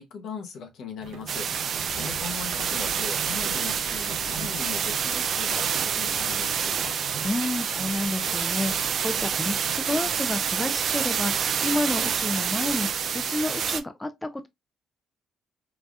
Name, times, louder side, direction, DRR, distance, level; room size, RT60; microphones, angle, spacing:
voice 1, 0.0-7.0, left 5 dB, 75° left, 0.7 m, -39 dB
Mechanisms, 1.0-9.8, right 7 dB, 90° right, 0.7 m, -43 dB
sound 1, 1.3-13.8, right 7 dB, 60° right, 0.3 m, -27 dB
sound 2, 1.9-6.0, right 4 dB, 25° right, 1.1 m, -47 dB
voice 2, 7.2-14.5, left 2 dB, 15° left, 0.4 m, -30 dB
3.9 x 2.3 x 2.3 m
cardioid pair, 90°, 0 cm